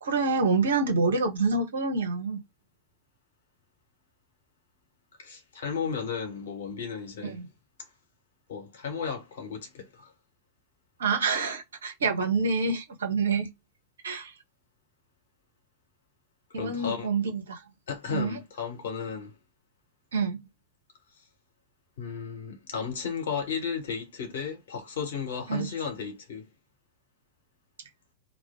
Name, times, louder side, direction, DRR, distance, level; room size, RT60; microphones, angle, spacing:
voice 1, 0.0-2.4 7.2-7.5 11.0-13.5 14.0-14.3 16.5-17.6 18.1-18.4 20.1-20.4 25.5-25.7, right 4 dB, 65° right, 0.8 m, -27 dB
voice 2, 5.2-7.3 8.5-10.1 16.6-17.1 17.9-19.3 22.0-26.4, left 6 dB, 60° left, 1.1 m, -34 dB
2.4 x 2.1 x 3.5 m
figure-of-eight pair, 90°, 0 cm